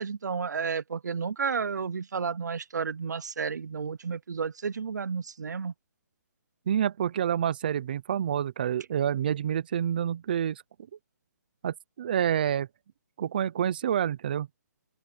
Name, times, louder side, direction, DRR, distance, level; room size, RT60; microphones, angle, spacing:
voice 1, 0.0-5.7, right 5 dB, 85° right, 0.8 m, -32 dB
voice 2, 6.7-10.6 11.6-12.7 13.2-14.5, right 9 dB, 30° right, 0.6 m, -28 dB
open air
hypercardioid pair, 175°, 9 cm